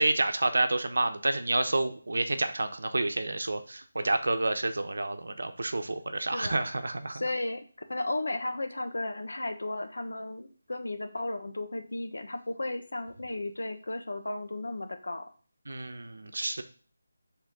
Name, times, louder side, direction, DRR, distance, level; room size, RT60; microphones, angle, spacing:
voice 1, 0.0-7.2 15.7-16.6, right 2 dB, 70° right, 7 dB, 0.9 m, -29 dB
voice 2, 7.1-7.6 7.9-15.2, left 2 dB, 80° left, 5 dB, 1.2 m, -34 dB
7.5 x 3.6 x 3.7 m, 0.41 s
figure-of-eight pair, 180°, 0 cm